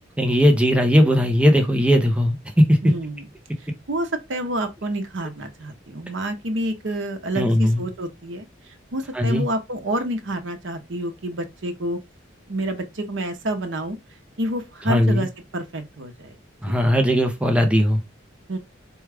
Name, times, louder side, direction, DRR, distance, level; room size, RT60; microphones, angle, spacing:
voice 1, 0.2-2.8 7.4-7.8 9.1-9.5 14.9-15.2 16.6-18.0, equal, 5° right, 0.6 m, -18 dB
voice 2, 2.8-3.3 3.9-8.5 8.9-12.0 12.5-14.0 14.4-16.3 16.7-16.8 18.5-18.6, right 1 dB, 75° right, 0.8 m, -28 dB
4.5 x 2.3 x 3.3 m
head